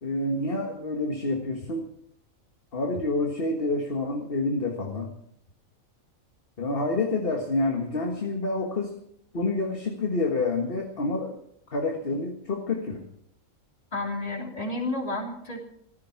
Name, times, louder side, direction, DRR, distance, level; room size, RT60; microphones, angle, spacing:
voice 1, 0.0-1.9 2.7-5.1 6.6-9.0 9.3-11.4 11.7-13.0, left 2 dB, 45° left, 2 dB, 1.8 m, -28 dB
voice 2, 13.9-15.6, left 2 dB, 25° left, 1 dB, 3.3 m, -31 dB
15.5 x 14.0 x 5.9 m, 0.70 s
omnidirectional pair, 1.4 m